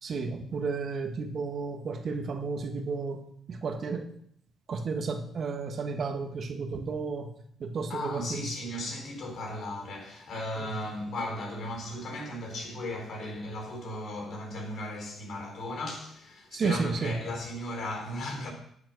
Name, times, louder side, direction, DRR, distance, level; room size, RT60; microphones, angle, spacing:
voice 1, 0.0-3.2 3.5-4.1 4.7-7.3 7.6-8.5 10.6-10.7 16.5-17.2, right 4 dB, 55° right, 1.5 m, -32 dB
voice 2, 7.9-18.5, left 1 dB, 65° left, 4.6 m, -36 dB
11.0 x 7.6 x 6.3 m
cardioid pair, 90°, 0 cm